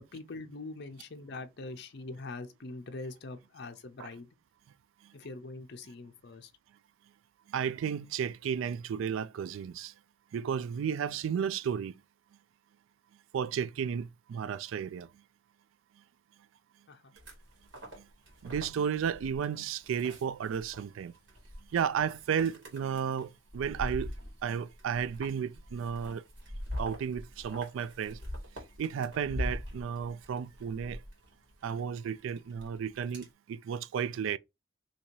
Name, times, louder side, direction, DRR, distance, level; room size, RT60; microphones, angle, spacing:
voice 1, 0.0-4.3 5.1-6.5 16.9-17.1, left 3 dB, 55° left, 0.6 m, -43 dB
voice 2, 7.5-9.9 10.3-11.9 13.3-15.1 18.0-18.1 18.4-21.1 21.7-24.1 24.4-26.2 26.8-28.2 28.8-31.0 31.6-34.4, right 7 dB, 80° right, 0.3 m, -33 dB
sound 1, 17.2-33.3, left 1 dB, 60° right, 1.7 m, -43 dB
2.9 x 2.7 x 4.4 m
head